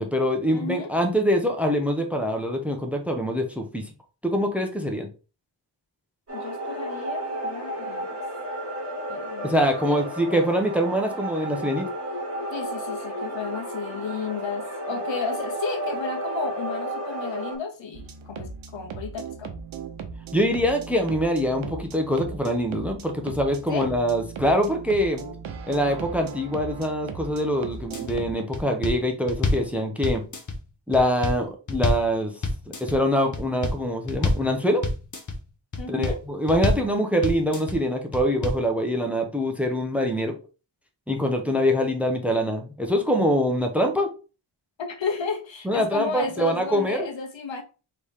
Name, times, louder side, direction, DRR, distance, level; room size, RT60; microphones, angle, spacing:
voice 1, 0.0-3.9 4.2-5.1 9.4-11.9 20.3-25.2 25.7-30.2 30.9-32.3 32.8-34.8 35.9-40.4 41.1-44.1 45.6-47.1, equal, 5° right, 4 dB, 0.8 m, -24 dB
voice 2, 0.5-0.9 6.3-8.2 9.1-9.5 9.8-10.0 12.5-19.5 23.7-23.9 35.8-36.2 44.8-47.6, left 5 dB, 75° left, 5 dB, 1.1 m, -33 dB
sound 1, 6.3-17.6, right 1 dB, 30° right, 1.9 m, -32 dB
sound 2, 17.9-28.3, right 5 dB, 85° right, 0.8 m, -38 dB
sound 3, 27.7-28.2 28.5-29.7 30.0-30.6 30.9-32.1 32.4-33.0 33.3-33.8 34.1-34.5 34.8-35.4 35.7-36.2 36.5-36.9 37.2-37.8 38.1-38.6, left 2 dB, 40° left, 1.0 m, -26 dB
4.1 x 3.2 x 3.4 m, 0.33 s
wide cardioid pair, 105°, 46 cm